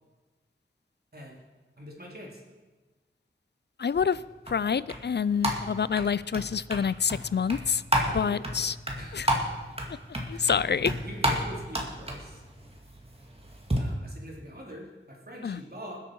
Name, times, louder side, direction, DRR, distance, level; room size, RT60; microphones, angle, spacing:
voice 1, 1.8-2.4 8.0-8.6 9.0-9.3 10.3-10.5 11.0-12.4 13.7-16.0, equal, 45° right, -2 dB, 3.6 m, -44 dB
voice 2, 3.8-4.2 4.5-7.8 8.1-8.8 9.1-9.3 10.3-10.9 15.4-15.6, left 6 dB, 55° left, 18 dB, 0.4 m, -27 dB
sound 1, 4.1-13.8, equal, 25° right, 2.3 m, -32 dB
20.5 x 8.2 x 4.7 m, 1.3 s
wide cardioid pair, 40°, 21 cm